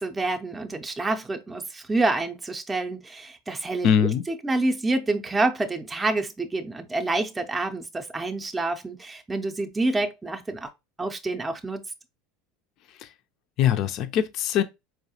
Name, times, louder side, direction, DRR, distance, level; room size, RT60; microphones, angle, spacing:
voice 1, 0.0-3.9 4.3-10.7 11.0-11.8, right 2 dB, 15° right, 0.5 m, -27 dB
voice 2, 3.8-4.2 13.0-13.1 13.6-14.6, left 9 dB, 50° left, 0.5 m, -22 dB
4.5 x 2.1 x 2.8 m
hypercardioid pair, 90°, 0 cm